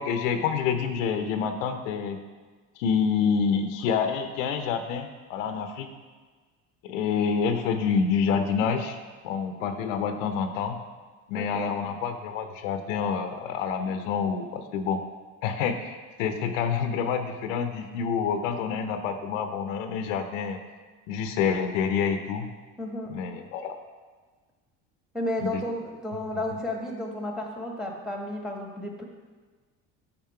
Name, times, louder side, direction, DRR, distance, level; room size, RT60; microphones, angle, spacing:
voice 1, 0.0-2.2 2.8-5.9 6.8-9.0 9.2-10.8 11.3-15.0 15.4-20.6 21.1-22.5 23.1-23.8 25.4-25.6, left 6 dB, 85° left, 8 dB, 0.6 m, -27 dB
voice 2, 11.4-11.7 22.8-23.2 25.1-29.0, left 1 dB, ahead, 1 dB, 1.4 m, -32 dB
5.8 x 4.1 x 5.6 m, 1.4 s
hypercardioid pair, 70°, 37 cm